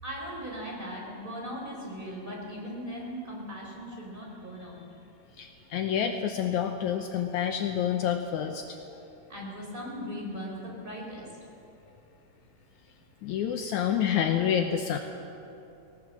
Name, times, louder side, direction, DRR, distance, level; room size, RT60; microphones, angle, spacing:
voice 1, 0.0-4.9 9.3-11.3, equal, 15° right, -3 dB, 4.2 m, -38 dB
voice 2, 5.4-8.8 13.2-15.0, left 9 dB, 70° left, 6 dB, 2.1 m, -28 dB
19.0 x 18.5 x 7.5 m, 2.9 s
omnidirectional pair, 3.7 m